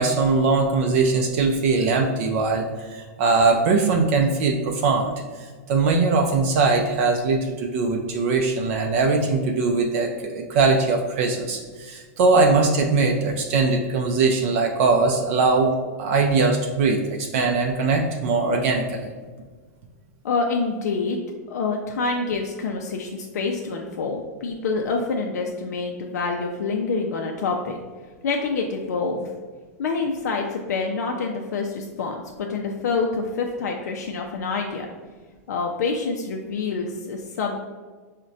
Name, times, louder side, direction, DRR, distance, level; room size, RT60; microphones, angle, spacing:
voice 1, 0.0-5.1 5.7-15.7 16.0-19.1, right 3 dB, 50° right, 2 dB, 0.4 m, -21 dB
voice 2, 20.2-21.2 21.5-27.8 28.2-29.3 29.8-34.9 35.5-37.6, left 4 dB, 80° left, 2 dB, 0.4 m, -27 dB
4.7 x 2.1 x 2.6 m, 1.4 s
hypercardioid pair, 140°, 9 cm